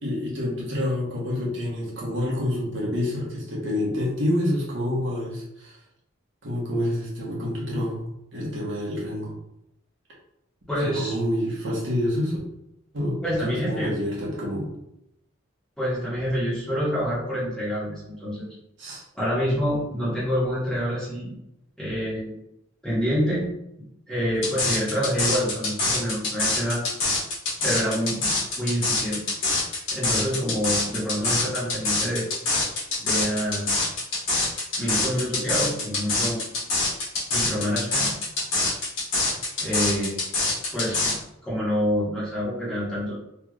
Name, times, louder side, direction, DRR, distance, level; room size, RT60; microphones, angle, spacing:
voice 1, 0.0-5.8 6.4-9.3 10.8-12.4 12.9-14.7 18.8-19.0, left 1 dB, 65° right, -4 dB, 1.2 m, -28 dB
voice 2, 10.7-11.2 13.2-13.9 15.8-18.5 19.1-21.3 21.8-22.3 22.8-23.5 24.1-26.8 27.6-29.2 29.9-32.3 33.0-33.7 34.8-36.4 37.3-38.2 39.6-40.2 40.7-43.1, equal, 5° left, -10 dB, 1.4 m, -27 dB
sound 1, 24.4-41.2, left 2 dB, 65° left, 1.3 m, -25 dB
3.3 x 3.3 x 2.4 m, 0.82 s
head